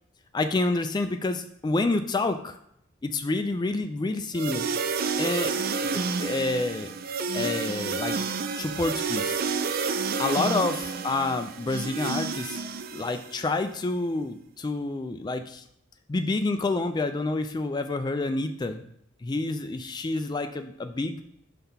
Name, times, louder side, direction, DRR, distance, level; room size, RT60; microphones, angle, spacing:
voice 1, 0.3-2.6 3.0-4.6 5.2-6.9 7.3-8.2 8.6-9.4 10.2-12.6 12.9-15.6 16.1-18.8 19.2-21.2, left 2 dB, 20° left, 9 dB, 0.3 m, -28 dB
sound 1, 4.3-13.5, right 5 dB, 50° right, 0.4 m, -30 dB
5.6 x 3.4 x 5.6 m, 0.75 s
head